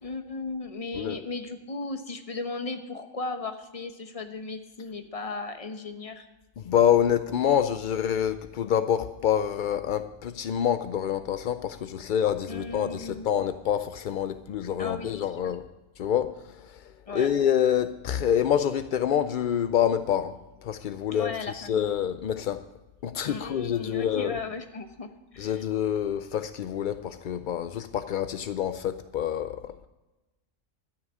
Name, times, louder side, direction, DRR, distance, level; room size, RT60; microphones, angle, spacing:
voice 1, 0.0-6.3 12.5-13.3 14.8-15.5 17.1-17.3 21.1-21.9 23.2-25.6, left 3 dB, 30° left, 7 dB, 1.0 m, -36 dB
voice 2, 6.6-15.7 16.0-20.3 20.6-22.6 23.0-24.4 25.4-29.9, left 9 dB, 70° left, 11 dB, 0.4 m, -27 dB
13.0 x 5.8 x 9.5 m, 1.0 s
omnidirectional pair, 1.4 m